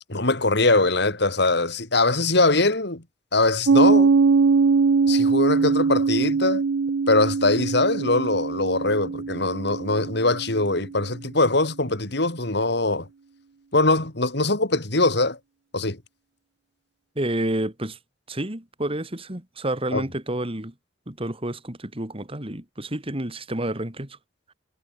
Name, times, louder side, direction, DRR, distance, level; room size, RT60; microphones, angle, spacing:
voice 1, 0.1-3.0 3.3-4.1 5.1-6.6 7.1-13.1 13.7-15.4 15.7-16.0 19.9-20.0, left 2 dB, 65° left, 3.7 m, -22 dB
Piano, 3.7-10.9, right 4 dB, 90° right, 0.5 m, -21 dB
voice 2, 17.2-18.0 18.3-20.7 21.1-24.2, right 1 dB, 30° right, 2.9 m, -29 dB
head